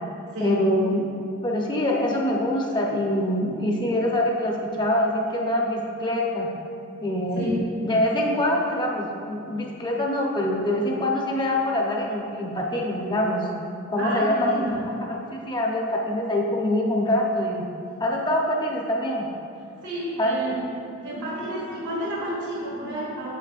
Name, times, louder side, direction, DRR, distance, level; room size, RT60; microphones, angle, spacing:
voice 1, 0.4-1.0 1.4-6.5 7.0-7.5 7.8-13.5 13.9-14.7 15.1-17.6 18.0-19.3 20.2-20.6, left 1 dB, 20° left, -1 dB, 0.9 m, -24 dB
voice 2, 14.0-14.8 19.8-20.7 21.0-23.3, right 1 dB, 80° right, -7 dB, 1.7 m, -30 dB
9.2 x 7.2 x 2.5 m, 2.7 s
head